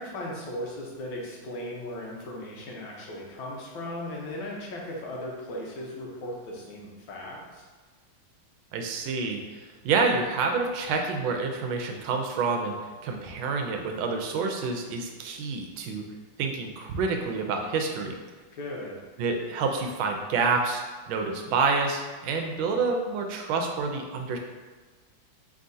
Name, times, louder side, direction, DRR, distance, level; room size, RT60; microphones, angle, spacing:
voice 1, 0.0-7.7 18.6-19.0, left 1 dB, 80° left, -2 dB, 1.7 m, -37 dB
voice 2, 8.7-12.8 13.0-16.0 16.4-18.2 19.2-24.4, right 4 dB, 90° right, 3 dB, 1.4 m, -28 dB
4.4 x 3.6 x 2.6 m, 1.4 s
omnidirectional pair, 2.1 m